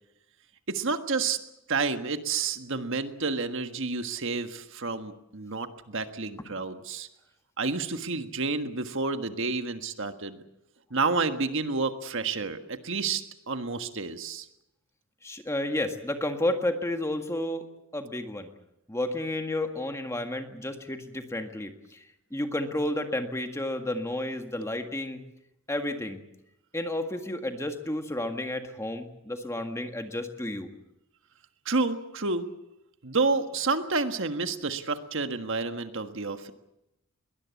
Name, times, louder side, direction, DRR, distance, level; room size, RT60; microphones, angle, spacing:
voice 1, 0.7-1.4 1.7-7.1 7.6-10.4 10.9-14.5 31.6-32.5 33.0-36.5, right 4 dB, 60° right, 8 dB, 1.5 m, -30 dB
voice 2, 15.2-17.7 17.9-18.5 18.9-22.0 22.3-25.2 25.7-26.2 26.7-30.7, left 1 dB, 15° left, 5 dB, 1.8 m, -31 dB
22.0 x 20.0 x 8.3 m, 0.86 s
head